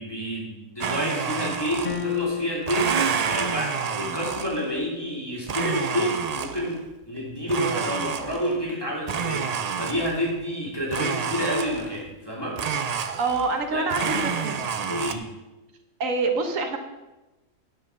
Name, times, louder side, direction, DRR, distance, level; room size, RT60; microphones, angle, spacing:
voice 1, 0.0-12.6 13.7-13.9 14.9-15.3, equal, 15° left, -4 dB, 2.8 m, -29 dB
Domestic sounds home sounds, 0.8-2.2 2.6-4.7 5.5-6.8 7.5-8.6 9.1-10.3 10.9-12.0 12.6-13.6 13.9-15.2, right 6 dB, 90° right, 0.3 m, -29 dB
sound 1, 1.9-2.9, left 8 dB, 45° left, 0.7 m, -30 dB
voice 2, 13.2-14.6 16.0-16.8, right 3 dB, 70° right, 5 dB, 1.5 m, -26 dB
9.9 x 5.4 x 6.3 m, 1.1 s
omnidirectional pair, 1.4 m